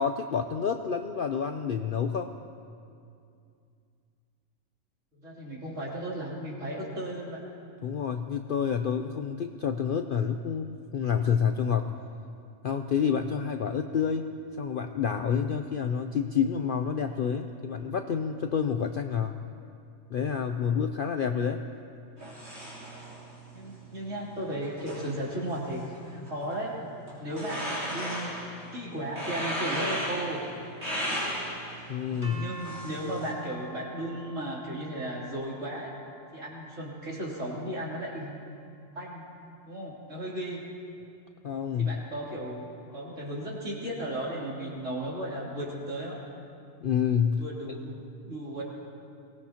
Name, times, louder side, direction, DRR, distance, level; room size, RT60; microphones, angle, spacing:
voice 1, 0.0-2.3 7.8-11.9 12.6-14.3 14.6-19.4 20.1-21.6 31.9-32.4 41.4-41.9 46.8-47.4, left 7 dB, 60° left, 6 dB, 0.6 m, -28 dB
voice 2, 5.2-7.4 23.5-26.8 27.2-28.3 28.7-30.4 32.1-35.9 36.3-38.4 38.9-39.3 39.6-40.6 41.8-46.2 47.4-48.6, right 1 dB, 65° right, -5 dB, 3.6 m, -35 dB
sound 1, 22.2-33.3, equal, 85° right, 3.9 m, -37 dB
sound 2, 32.2-38.1, right 1 dB, 20° right, 3.0 m, -49 dB
23.0 x 18.5 x 2.9 m, 2.4 s
omnidirectional pair, 1.4 m